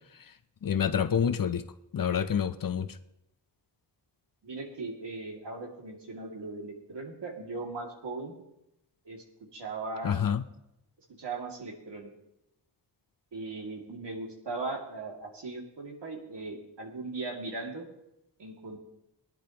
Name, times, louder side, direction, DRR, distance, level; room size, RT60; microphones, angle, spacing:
voice 1, 0.6-1.7 1.9-2.9 10.0-10.4, left 8 dB, 50° left, 11 dB, 0.6 m, -27 dB
voice 2, 4.4-8.3 9.0-9.2 9.5-10.2 11.2-12.1 13.3-17.9 18.4-18.8, right 3 dB, 70° right, 0 dB, 2.4 m, -38 dB
20.5 x 10.0 x 2.9 m, 0.85 s
wide cardioid pair, 130°, 43 cm